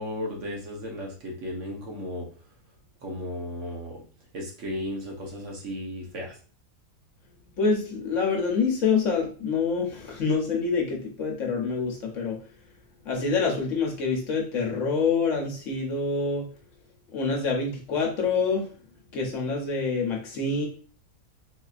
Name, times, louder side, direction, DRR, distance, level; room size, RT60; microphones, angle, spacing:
voice 1, 0.0-2.3 3.0-4.0 4.3-6.3, left 1 dB, 60° right, -1 dB, 1.2 m, -35 dB
voice 2, 7.6-12.4 13.0-16.5 17.1-18.7 19.1-20.7, left 4 dB, 60° left, 0 dB, 1.1 m, -26 dB
3.9 x 2.7 x 2.4 m, 0.39 s
omnidirectional pair, 1.5 m